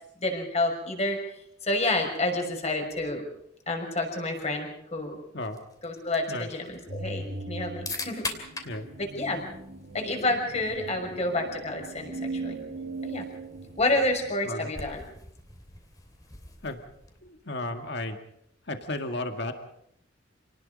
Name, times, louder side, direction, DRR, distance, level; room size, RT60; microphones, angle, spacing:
voice 1, 0.2-1.2 1.6-3.2 3.7-5.2 5.8-8.3 9.0-9.5 9.9-12.6 13.0-13.2 13.8-15.0, left 2 dB, 35° left, 3 dB, 6.1 m, -29 dB
sound 1, 5.4-17.4, left 3 dB, 20° left, 2.9 m, -44 dB
sound 2, 6.9-14.3, right 2 dB, 60° right, 2.1 m, -39 dB
voice 2, 17.2-18.2 18.7-19.5, left 2 dB, 60° left, 6 dB, 2.1 m, -33 dB
28.5 x 19.0 x 5.4 m, 0.73 s
head